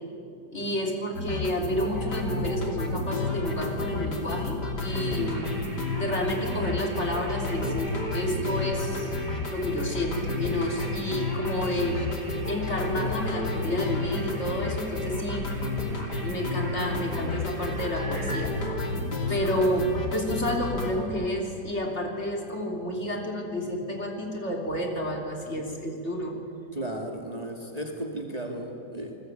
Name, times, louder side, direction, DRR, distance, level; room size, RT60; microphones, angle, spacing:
voice 1, 0.5-5.5 5.9-9.1 9.5-12.0 12.5-15.6 15.8-18.6 19.3-26.4, equal, 40° left, 1 dB, 3.6 m, -30 dB
sound 1, 1.2-20.9, left 2 dB, 75° left, 3.5 m, -31 dB
sound 2, 4.9-18.5, right 2 dB, 40° right, 4.0 m, -45 dB
voice 2, 26.7-29.2, right 1 dB, 20° right, 2 dB, 2.2 m, -35 dB
29.5 x 20.0 x 9.1 m, 2.6 s
omnidirectional pair, 1.8 m